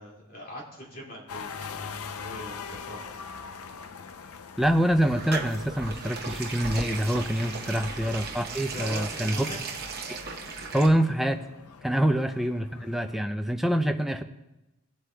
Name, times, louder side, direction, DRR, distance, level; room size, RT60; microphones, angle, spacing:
voice 1, 0.0-3.0 7.7-7.8 8.7-9.6 10.7-11.0, left 1 dB, 40° left, -3 dB, 2.2 m, -42 dB
sound 1, 1.3-13.2, left 6 dB, 85° left, 0.5 m, -43 dB
voice 2, 4.6-9.4 10.7-11.4 11.8-14.2, equal, ahead, 5 dB, 0.4 m, -25 dB
sound 2, 4.6-10.9, right 4 dB, 45° right, 0.9 m, -36 dB
17.5 x 8.0 x 2.3 m, 0.97 s
head